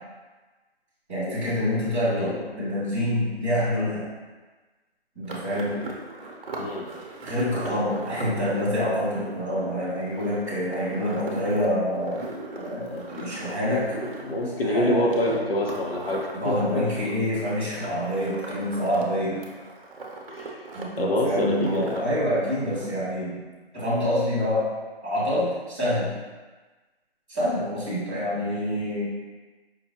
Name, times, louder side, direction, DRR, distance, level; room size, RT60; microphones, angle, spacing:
voice 1, 1.1-4.0 5.1-5.7 7.2-12.2 12.6-13.8 14.6-15.0 16.3-19.4 20.7-23.4 23.7-24.7 25.0-26.1 27.3-29.0, left 1 dB, 5° left, -19 dB, 0.9 m, -26 dB
sound 1, 5.3-19.0 19.3-20.8 21.1-23.0, right 2 dB, 60° right, 0.8 m, -39 dB
voice 2, 13.9-16.5 20.3-20.7 21.0-22.0, left 1 dB, 65° left, -1 dB, 0.8 m, -26 dB
5.1 x 2.1 x 2.9 m, 1.3 s
hypercardioid pair, 175°, 32 cm